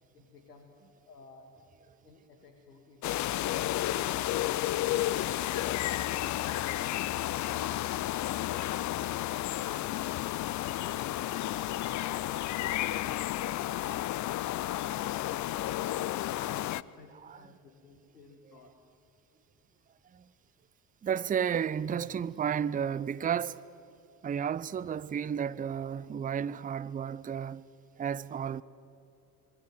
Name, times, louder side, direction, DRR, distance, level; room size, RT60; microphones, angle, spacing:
voice 1, 0.1-0.8 1.1-1.5 2.0-5.2 6.9-7.7 16.8-18.8, left 4 dB, 80° left, 2.1 m, -55 dB
sound 1, 3.0-16.8, left 14 dB, 40° left, 0.6 m, -32 dB
voice 2, 21.0-23.6 24.2-27.6 28.0-28.6, right 8 dB, 20° right, 0.6 m, -32 dB
26.0 x 23.5 x 7.7 m
figure-of-eight pair, 55°, 47 cm